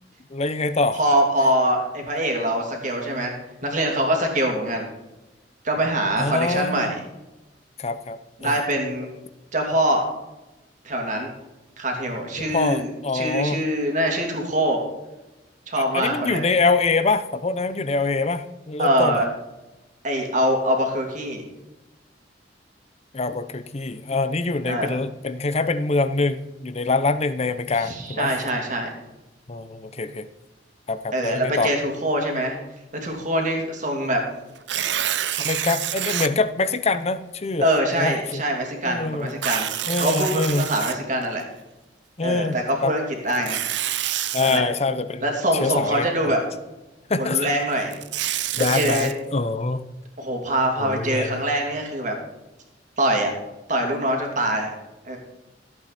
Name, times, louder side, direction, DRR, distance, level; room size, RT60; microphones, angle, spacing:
voice 1, 0.3-1.0 6.2-6.9 7.8-8.6 12.4-13.6 15.8-19.2 23.1-28.3 29.5-30.3 30.9-31.7 35.4-37.7 38.0-38.4 38.8-39.3 39.9-40.7 42.2-42.5 42.8-42.9 44.3-45.3 45.6-46.4 47.1-47.5 48.6-49.8 50.8-51.4, left 3 dB, 35° left, 12 dB, 0.7 m, -24 dB
voice 2, 0.9-3.3 3.6-4.9 5.6-7.0 8.4-9.1 9.5-10.0 10.8-11.3 11.8-14.8 15.7-16.4 18.8-19.3 20.0-21.5 24.7-25.0 27.8-28.9 31.1-32.6 33.0-34.2 37.6-41.4 42.2-43.6 44.4-44.6 45.2-46.4 47.2-48.0 48.6-49.1 50.2-52.2 53.0-53.3 53.7-54.7 55.1-55.2, right 1 dB, 45° right, 2 dB, 2.7 m, -24 dB
Tearing, 34.6-36.3 36.9-37.0 39.3-41.4 43.3-44.6 47.7-49.1, right 11 dB, 75° right, 0.7 m, -27 dB
14.5 x 8.5 x 4.2 m, 1.0 s
head